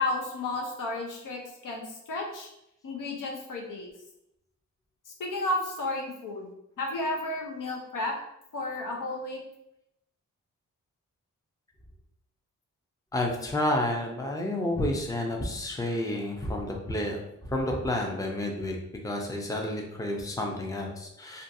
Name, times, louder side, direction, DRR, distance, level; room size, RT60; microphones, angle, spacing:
voice 1, 0.0-2.5 2.8-3.9 5.2-6.5 6.8-8.2 8.5-9.4, left 2 dB, 70° left, 0 dB, 0.7 m, -32 dB
voice 2, 13.1-17.2 17.4-18.8 19.0-21.4, left 1 dB, 10° left, 1 dB, 0.6 m, -30 dB
2.5 x 2.3 x 2.6 m, 0.79 s
cardioid pair, 45°, 33 cm